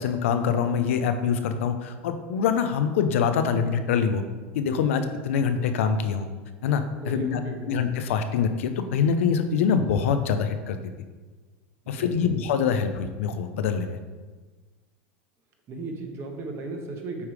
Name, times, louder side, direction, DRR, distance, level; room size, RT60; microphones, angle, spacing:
voice 1, 0.0-4.2 4.5-6.3 6.6-7.4 7.7-10.8 11.9-14.0, left 6 dB, 85° left, 8 dB, 0.6 m, -24 dB
voice 2, 7.0-7.7 11.8-12.3 15.7-17.3, right 3 dB, 40° right, 3 dB, 1.3 m, -36 dB
8.5 x 3.2 x 4.9 m, 1.3 s
supercardioid pair, 115°, 7 cm